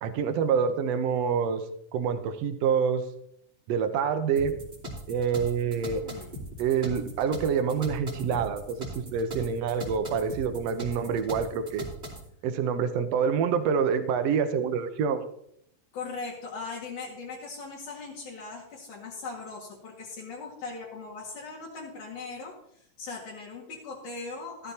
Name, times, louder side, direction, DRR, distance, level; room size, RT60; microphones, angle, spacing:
voice 1, 0.0-1.6 1.9-3.1 3.7-4.5 5.1-6.0 6.6-11.9 12.4-15.2, right 6 dB, 65° right, 9 dB, 1.8 m, -27 dB
sound 1, 4.4-12.3, right 1 dB, 20° right, 3.2 m, -39 dB
voice 2, 5.6-6.4 15.9-24.7, left 4 dB, 70° left, -5 dB, 3.4 m, -40 dB
13.5 x 13.5 x 2.9 m, 0.72 s
omnidirectional pair, 3.7 m